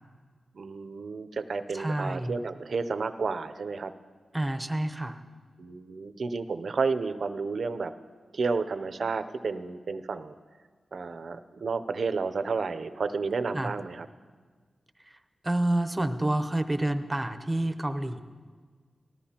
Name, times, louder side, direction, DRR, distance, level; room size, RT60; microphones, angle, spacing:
voice 1, 0.5-3.9 5.6-7.9 8.3-10.3 10.9-14.1, right 4 dB, 65° right, 10 dB, 0.5 m, -31 dB
voice 2, 1.7-2.3 4.3-5.2 13.5-13.7 15.4-18.2, right 1 dB, 15° right, 9 dB, 0.7 m, -28 dB
18.5 x 13.5 x 2.9 m, 1.5 s
cardioid pair, 70°, 0 cm